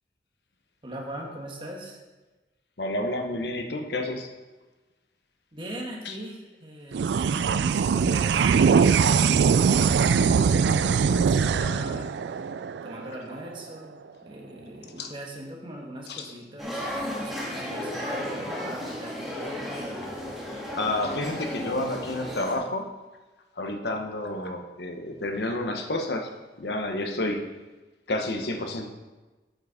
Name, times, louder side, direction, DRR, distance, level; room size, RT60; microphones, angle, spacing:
voice 1, 0.8-2.0 5.5-12.5 12.8-19.2, right 1 dB, 30° right, 0 dB, 1.4 m, -41 dB
voice 2, 2.8-4.3 6.0-6.1 15.0-15.1 16.1-16.3 20.7-22.9 23.6-26.3 26.6-27.4 28.1-28.9, left 2 dB, 75° left, 4 dB, 1.0 m, -30 dB
sound 1, 6.9-13.6, right 6 dB, 85° right, 0.3 m, -22 dB
sound 2, 16.6-22.6, equal, ahead, 1.7 m, -34 dB
7.9 x 7.4 x 5.0 m, 1.2 s
head